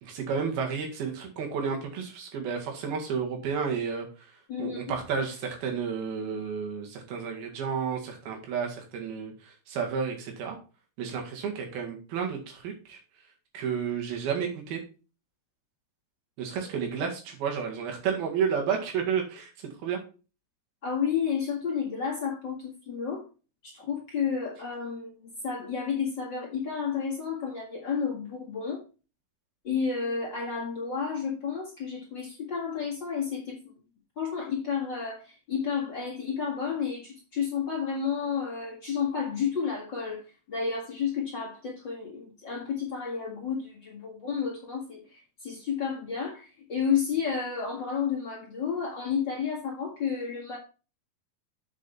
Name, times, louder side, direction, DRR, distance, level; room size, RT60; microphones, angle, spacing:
voice 1, 0.0-4.1 4.6-10.6 11.0-13.0 13.5-14.8 16.4-19.5 19.8-20.0, right 6 dB, 85° right, 2 dB, 3.8 m, -31 dB
voice 2, 4.5-4.8 20.8-23.2 23.6-28.8 29.6-33.8 34.2-40.2 40.5-50.6, left 6 dB, 40° left, -3 dB, 2.0 m, -31 dB
7.3 x 6.9 x 4.3 m, 0.33 s
omnidirectional pair, 4.3 m